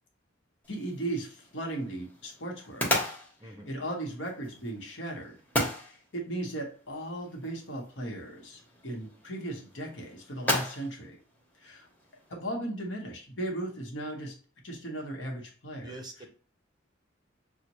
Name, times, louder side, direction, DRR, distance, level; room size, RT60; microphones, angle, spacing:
sound 1, 0.6-12.3, left 1 dB, 10° left, 1.0 m, -36 dB
voice 1, 0.7-3.0 3.7-5.4 5.8-11.2 11.6-11.9 12.3-14.3 14.6-15.9, right 1 dB, 65° left, 0 dB, 1.1 m, -37 dB
voice 2, 3.4-3.7 15.8-16.3, right 2 dB, 20° right, 4 dB, 0.6 m, -44 dB
6.4 x 2.2 x 3.0 m, 0.41 s
head